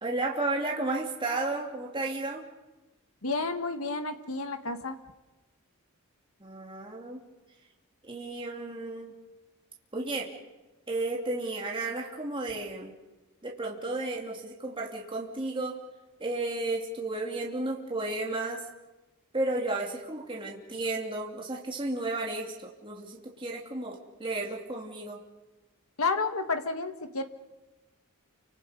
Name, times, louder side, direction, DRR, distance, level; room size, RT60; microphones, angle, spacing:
voice 1, 0.0-2.4 6.4-7.2 8.0-9.1 9.9-10.3 10.9-12.9 13.4-15.8 16.2-18.6 19.3-25.2, right 2 dB, 25° right, -1 dB, 3.0 m, -33 dB
voice 2, 3.2-5.0 26.0-27.2, left 3 dB, 75° left, 7 dB, 1.8 m, -30 dB
29.5 x 26.0 x 5.3 m, 1.1 s
head